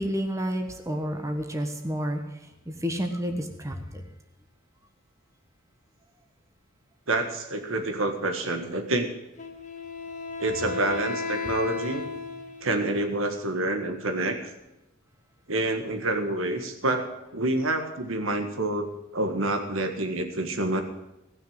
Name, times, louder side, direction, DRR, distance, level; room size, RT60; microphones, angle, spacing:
voice 1, 0.0-2.2 2.7-3.8, equal, 15° right, 5 dB, 1.4 m, -29 dB
voice 2, 7.1-9.1 10.4-12.1 12.6-14.5 15.5-18.9 19.1-20.8, right 2 dB, 80° right, 6 dB, 1.7 m, -27 dB
Wind instrument woodwind instrument, 9.4-13.0, left 4 dB, 35° left, 1.4 m, -34 dB
18.0 x 6.6 x 8.9 m, 0.93 s
head